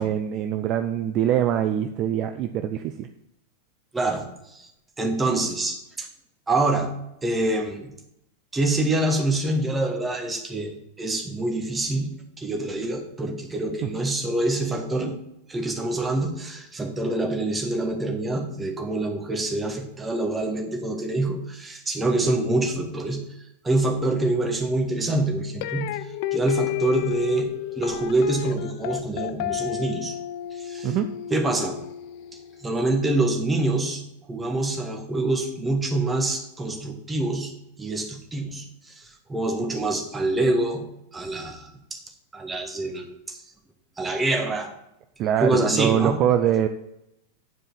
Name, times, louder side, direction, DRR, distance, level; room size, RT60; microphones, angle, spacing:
voice 1, 0.0-3.1 13.8-13.9 30.8-31.1 45.2-46.7, right 10 dB, 35° right, 7 dB, 0.5 m, -23 dB
voice 2, 3.9-4.7 5.0-6.1 6.5-7.0 7.2-7.9 8.5-15.2 15.5-23.3 23.6-26.0 26.3-30.2 30.5-31.0 31.3-31.8 32.6-34.0 34.3-37.5 37.8-42.0 42.3-43.4 44.0-44.7 45.4-46.2, right 2 dB, 10° right, 2 dB, 1.5 m, -26 dB
sound 1, 25.6-32.7, left 14 dB, 45° left, 0.4 m, -32 dB
9.7 x 4.9 x 4.7 m, 0.84 s
figure-of-eight pair, 90°, 0 cm